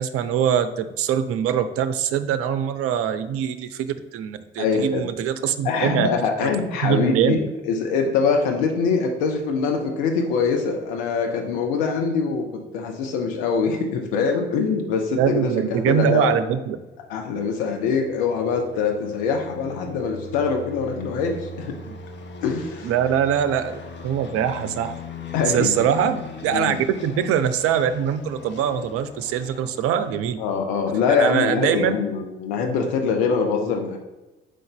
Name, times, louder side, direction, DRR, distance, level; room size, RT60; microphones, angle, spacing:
voice 1, 0.0-6.1 6.4-6.5 6.8-7.4 15.2-16.8 21.9-22.0 22.8-25.0 25.5-26.8 27.0-30.4 31.2-31.9, right 8 dB, 50° right, 11 dB, 0.6 m, -23 dB
voice 2, 4.6-5.1 5.6-16.3 17.1-21.8 22.4-22.9 25.3-25.8 26.5-26.8 30.4-34.0, left 5 dB, 65° left, 3 dB, 0.8 m, -23 dB
sound 1, 16.9-30.3, left 3 dB, 40° left, 0.9 m, -40 dB
5.0 x 3.9 x 5.8 m, 1.1 s
figure-of-eight pair, 50°, 29 cm